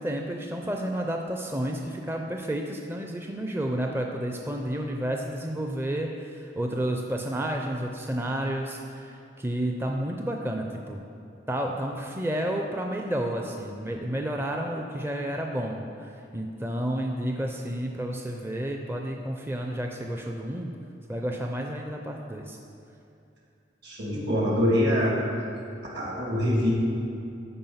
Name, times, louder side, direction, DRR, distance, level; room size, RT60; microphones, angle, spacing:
voice 1, 0.0-11.0 11.5-20.7 21.1-22.6, right 1 dB, 15° right, 2 dB, 0.5 m, -31 dB
voice 2, 23.8-25.2 25.9-26.7, equal, 65° right, -3 dB, 2.3 m, -24 dB
13.5 x 4.6 x 5.6 m, 2.6 s
head